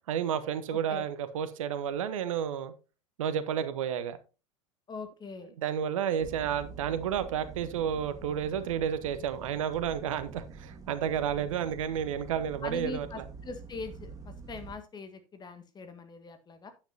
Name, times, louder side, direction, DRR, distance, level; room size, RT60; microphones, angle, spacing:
voice 1, 0.1-2.7 3.2-4.2 5.6-13.2, right 8 dB, 70° right, 1.0 m, -31 dB
voice 2, 0.7-1.1 4.9-5.5 12.6-16.7, left 3 dB, 25° left, 1.6 m, -42 dB
sound 1, 6.2-14.8, right 4 dB, 20° right, 1.9 m, -46 dB
9.6 x 9.0 x 2.7 m
figure-of-eight pair, 85°, 18 cm